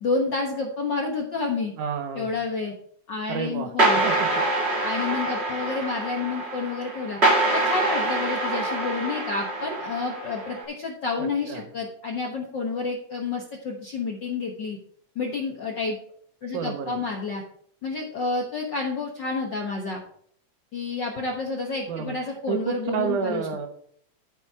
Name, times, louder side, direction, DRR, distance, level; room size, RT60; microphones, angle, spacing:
voice 1, 0.0-1.7 2.1-2.7 3.1-4.0 4.8-7.2 7.5-14.8 15.1-16.0 16.4-17.4 17.8-20.0 20.7-23.4, left 4 dB, 60° left, 0 dB, 1.2 m, -29 dB
voice 2, 1.8-2.3 3.3-4.3 11.2-11.7 16.5-17.0 21.9-23.7, right 7 dB, 80° right, 7 dB, 2.6 m, -30 dB
sound 1, 3.8-10.6, right 2 dB, 25° right, 2.0 m, -25 dB
12.5 x 5.6 x 4.7 m, 0.63 s
omnidirectional pair, 3.6 m